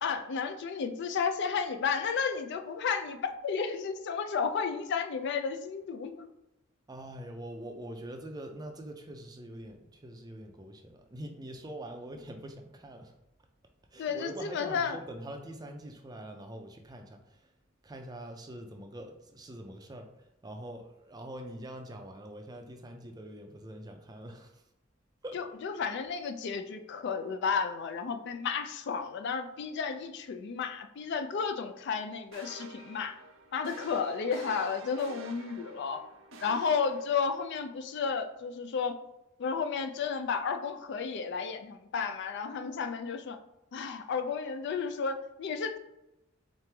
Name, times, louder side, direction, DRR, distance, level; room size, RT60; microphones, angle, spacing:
voice 1, 0.0-6.3 14.0-15.0 25.3-33.2 33.5-36.0 36.4-39.0 39.4-43.4 43.7-45.8, left 5 dB, 60° left, 8 dB, 0.4 m, -32 dB
voice 2, 6.9-13.1 13.9-17.5 17.8-20.1 20.4-24.6 25.2-25.4, right 1 dB, 20° right, 4 dB, 0.4 m, -44 dB
sound 1, 32.3-37.6, right 3 dB, 70° right, 0.5 m, -49 dB
3.8 x 3.2 x 3.3 m, 0.92 s
head